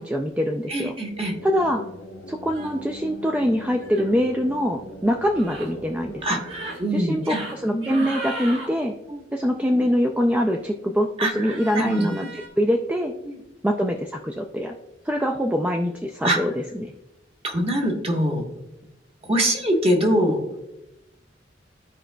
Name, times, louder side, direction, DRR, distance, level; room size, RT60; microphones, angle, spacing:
voice 1, 0.0-0.9 1.4-1.8 2.3-6.2 6.9-8.9 9.3-11.1 11.4-13.1 13.6-14.8 15.0-16.9, equal, 5° right, 3 dB, 0.4 m, -24 dB
voice 2, 0.7-1.3 6.2-7.4 7.7-8.1 9.1-9.2 11.2-12.3 13.2-13.4 16.2-16.4 17.4-18.4 19.2-20.4, right 1 dB, 30° right, 1 dB, 1.3 m, -24 dB
sound 1, 1.0-8.5, equal, 70° left, 0.8 m, -42 dB
sound 2, 2.5-2.8 3.8-4.1 5.3-5.7 6.4-6.8 7.2-7.5 7.8-8.7 11.5-12.5, right 1 dB, 65° right, 1.7 m, -36 dB
14.0 x 4.9 x 2.2 m, 0.93 s
head